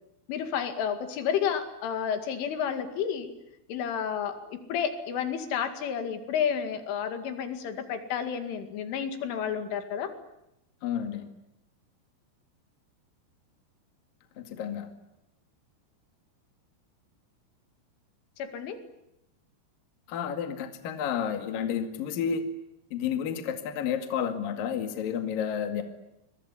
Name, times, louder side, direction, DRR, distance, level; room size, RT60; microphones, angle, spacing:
voice 1, 0.3-3.3 3.7-10.1 18.4-18.8, left 8 dB, 75° left, 8 dB, 4.5 m, -31 dB
voice 2, 10.8-11.3 14.4-14.9 20.1-22.4 22.9-25.8, left 8 dB, 55° left, 7 dB, 3.2 m, -31 dB
26.0 x 22.5 x 9.8 m, 0.86 s
omnidirectional pair, 5.8 m